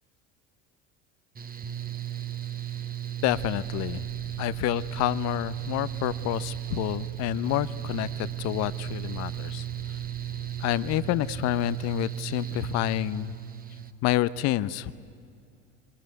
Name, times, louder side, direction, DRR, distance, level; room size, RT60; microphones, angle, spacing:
Mechanical fan, 1.3-13.9, right 11 dB, 25° right, 1.3 m, -35 dB
voice 1, 3.2-4.0 4.4-10.0 10.6-13.4 14.0-14.9, left 15 dB, 45° left, 15 dB, 0.8 m, -28 dB
sound 1, 3.2-11.7, right 5 dB, 80° right, 7.5 m, -46 dB
24.0 x 21.5 x 9.4 m, 2.4 s
hypercardioid pair, 70°, 37 cm